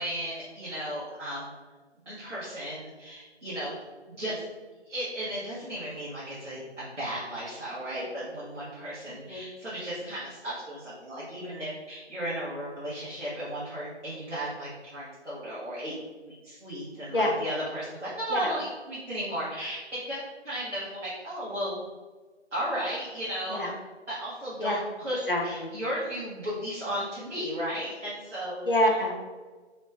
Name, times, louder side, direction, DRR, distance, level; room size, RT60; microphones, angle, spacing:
voice 1, 0.0-1.5 2.0-3.7 4.2-4.5 4.9-15.9 16.3-21.8 22.5-23.6 24.1-28.7, equal, 90° right, -9 dB, 1.1 m, -35 dB
voice 2, 9.1-9.4 17.1-17.3 18.3-18.4 23.5-23.7 24.6-24.8 25.3-25.7 28.7-29.2, left 1 dB, 50° left, 0 dB, 0.5 m, -26 dB
3.1 x 2.2 x 3.1 m, 1.3 s
figure-of-eight pair, 175°, 35 cm